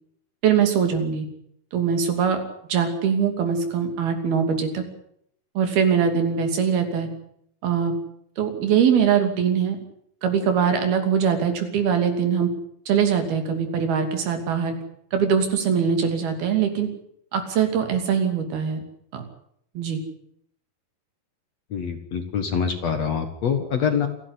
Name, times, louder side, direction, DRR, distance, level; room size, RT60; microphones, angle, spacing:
voice 1, 0.4-1.3 1.7-2.4 2.7-4.8 5.6-7.1 7.6-7.9 8.4-9.8 10.2-12.5 12.9-14.8 15.1-16.9 17.3-18.8 19.1-19.2 19.8-20.0, right 7 dB, 70° right, 6 dB, 4.7 m, -22 dB
voice 2, 21.7-24.1, left 7 dB, 55° left, 7 dB, 2.3 m, -25 dB
28.5 x 11.0 x 9.9 m, 0.70 s
omnidirectional pair, 4.5 m